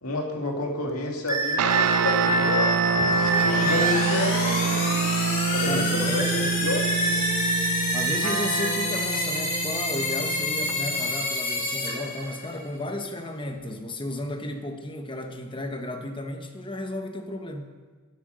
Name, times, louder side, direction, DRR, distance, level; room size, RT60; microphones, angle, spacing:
voice 1, 0.0-4.8 5.5-7.2, left 2 dB, 80° left, 1 dB, 2.4 m, -30 dB
sound 1, 1.3-4.0 6.2-8.7, right 2 dB, 15° right, 0.9 m, -26 dB
sound 2, 1.6-11.3, right 7 dB, 85° right, 0.5 m, -27 dB
sound 3, 2.9-12.7, left 2 dB, 40° left, 3.8 m, -28 dB
voice 2, 5.7-6.6 7.9-17.7, left 1 dB, 20° left, 5 dB, 1.2 m, -33 dB
11.5 x 11.5 x 6.4 m, 1.4 s
head